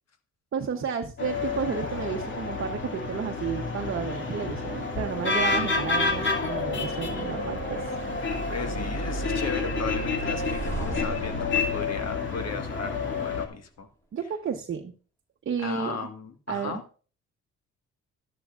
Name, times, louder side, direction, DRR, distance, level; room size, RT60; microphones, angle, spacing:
voice 1, 0.5-7.9 14.1-14.9 15.4-16.0 16.5-17.0, right 7 dB, 45° right, 3 dB, 0.9 m, -32 dB
sound 1, 1.2-13.5, left 3 dB, 40° left, 2.3 m, -29 dB
voice 2, 8.5-13.9 15.6-16.8, left 5 dB, 55° left, 7 dB, 1.6 m, -36 dB
sound 2, 10.3-13.2, right 1 dB, 10° left, 5.5 m, -37 dB
12.0 x 11.5 x 2.5 m, 0.38 s
cardioid pair, 90°, 30 cm